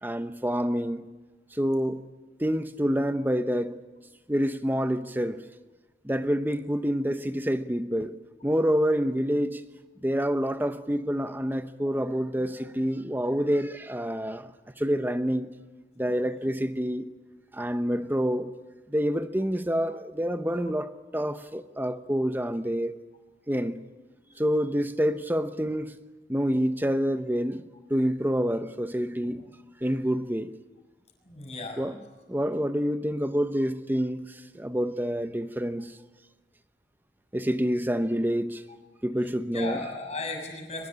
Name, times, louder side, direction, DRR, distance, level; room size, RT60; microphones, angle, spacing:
voice 1, 0.0-1.1 1.5-2.0 2.4-3.8 4.3-5.4 6.0-8.2 8.4-9.6 10.0-14.5 14.8-15.5 16.0-17.1 17.5-18.5 18.9-23.0 23.5-23.8 24.4-25.9 26.3-27.6 27.9-29.4 29.8-30.5 31.8-32.0 32.3-35.9 37.3-38.6 39.0-39.8, equal, 10° right, 0.9 m, -27 dB
voice 2, 17.6-18.1 24.2-24.4 29.2-29.4 31.2-31.8 39.5-40.9, left 3 dB, 40° left, 6.5 m, -37 dB
23.5 x 21.0 x 8.8 m
head